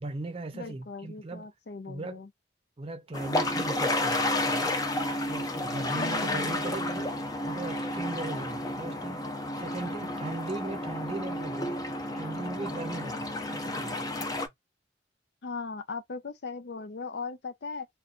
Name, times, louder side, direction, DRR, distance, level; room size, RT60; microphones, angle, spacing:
voice 1, 0.0-1.5 1.9-2.2 2.8-4.8 5.2-7.1 7.4-9.3 9.6-11.8 12.1-14.5, right 2 dB, 30° right, 0.6 m, -38 dB
voice 2, 0.5-2.3 5.9-6.6 15.4-17.9, left 4 dB, 60° left, 0.6 m, -38 dB
sound 1, 3.1-14.5, left 1 dB, 20° left, 0.5 m, -31 dB
2.6 x 2.3 x 3.7 m
head